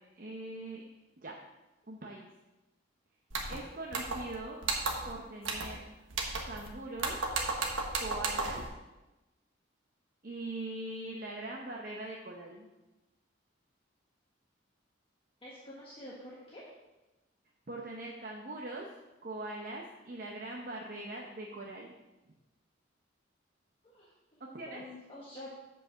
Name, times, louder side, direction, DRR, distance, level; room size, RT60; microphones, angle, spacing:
voice 1, 0.1-0.8 1.2-1.4 1.9-2.3 3.5-4.6 5.0-5.9 6.4-7.2 8.0-8.6 10.2-12.7 17.7-18.9 19.2-21.9 24.5-24.8, right 2 dB, 45° right, -1 dB, 0.8 m, -41 dB
sound 1, 3.3-3.6 3.9-4.4 4.6-5.1 5.4-5.8 6.1-6.7 7.0-8.7, right 3 dB, 90° right, 1.3 m, -34 dB
voice 2, 15.4-16.6 23.8-25.5, left 1 dB, 30° left, -6 dB, 1.3 m, -48 dB
7.9 x 4.8 x 6.1 m, 1.1 s
head